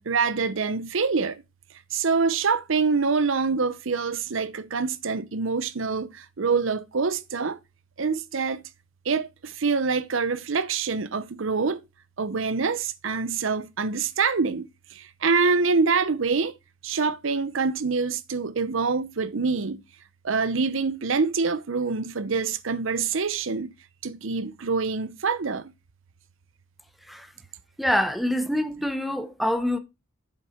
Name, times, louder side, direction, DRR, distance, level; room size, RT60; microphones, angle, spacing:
voice 1, 0.0-1.4 1.9-7.6 8.0-8.6 9.0-11.8 12.2-16.6 16.8-19.8 20.2-23.7 24.0-25.7, right 4 dB, 70° right, 0.7 m, -25 dB
voice 2, 27.8-29.8, left 1 dB, ahead, 0.9 m, -25 dB
8.2 x 6.5 x 4.4 m
head